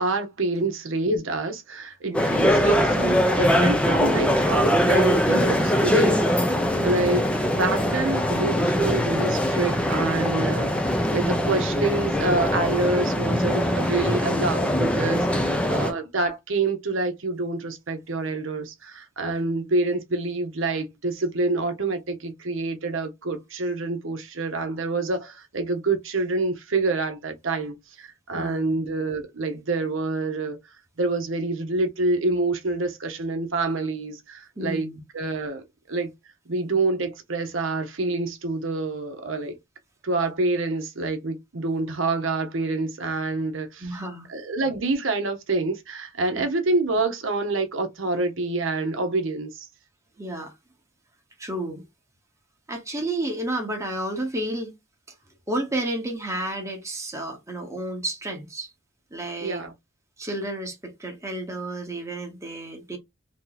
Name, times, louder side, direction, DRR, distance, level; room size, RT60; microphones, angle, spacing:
voice 1, 0.0-6.5 6.8-7.2 7.5-10.9 11.1-30.6 31.0-34.9 35.1-36.1 36.5-39.6 40.0-43.9 44.3-49.6 59.4-59.7, right 3 dB, 65° right, 0.8 m, -27 dB
voice 2, 2.0-2.4 28.3-28.7 34.6-35.0 43.8-44.3 46.4-46.5 50.2-50.5 51.4-51.8 52.7-54.7 55.5-58.7 59.1-59.6 60.2-63.0, right 1 dB, 15° right, 1.0 m, -31 dB
sound 1, 2.1-15.9, equal, 5° left, 0.6 m, -22 dB
3.0 x 2.7 x 3.9 m
head